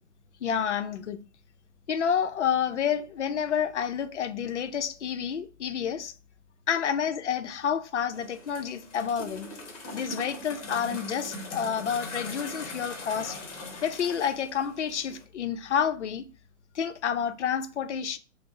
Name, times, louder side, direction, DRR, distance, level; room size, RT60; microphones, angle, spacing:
voice 1, 0.4-1.2 1.9-6.1 6.7-9.5 9.9-13.4 13.8-16.2 16.8-18.2, left 8 dB, 55° left, 0.5 m, -29 dB
sound 1, 8.1-15.2, left 2 dB, 25° left, 0.8 m, -41 dB
5.9 x 2.0 x 3.4 m
figure-of-eight pair, 125°, 43 cm